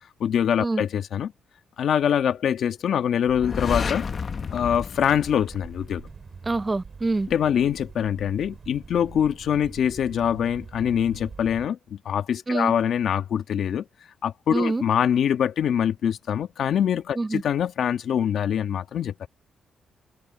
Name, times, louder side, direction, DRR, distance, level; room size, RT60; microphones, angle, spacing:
voice 1, 0.2-1.3 1.8-4.1 4.5-6.1 7.3-13.8 14.2-19.3, left 9 dB, 70° left, 1.5 m, -24 dB
sound 1, 3.3-6.1, left 5 dB, 40° left, 1.1 m, -31 dB
sound 2, 5.0-11.7, right 5 dB, 40° right, 5.1 m, -44 dB
voice 2, 6.4-7.3 12.5-12.7 14.5-14.8 17.2-17.4, right 3 dB, 20° right, 0.5 m, -25 dB
cardioid pair, 105°, 0 cm